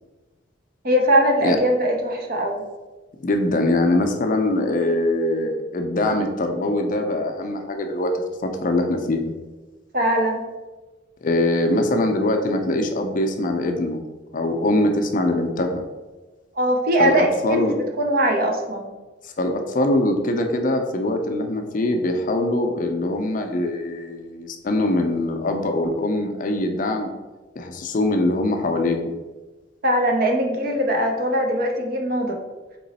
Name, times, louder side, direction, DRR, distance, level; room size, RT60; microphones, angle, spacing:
voice 1, 0.8-2.6 9.9-10.4 16.6-18.9 29.8-32.4, right 1 dB, 50° right, 2 dB, 0.6 m, -21 dB
voice 2, 3.2-8.1 8.4-9.2 11.2-14.0 14.3-15.8 17.0-17.8 19.2-27.1 27.6-29.1, left 1 dB, 45° left, 4 dB, 0.4 m, -22 dB
3.9 x 3.0 x 4.0 m, 1.2 s
head